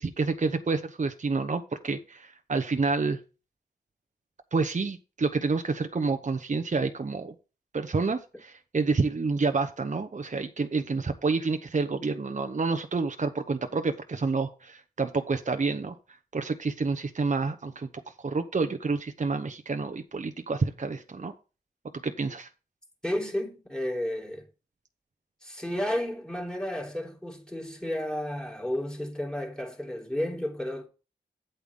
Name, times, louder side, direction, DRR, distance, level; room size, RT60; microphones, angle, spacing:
voice 1, 0.0-3.2 4.5-7.3 7.7-16.0 16.3-17.9 18.2-21.3 22.0-22.5, right 4 dB, 40° right, 0.9 m, -28 dB
voice 2, 23.0-24.5 25.4-30.9, left 1 dB, 5° left, 3.4 m, -32 dB
8.4 x 8.0 x 3.7 m
cardioid pair, 40°, 19 cm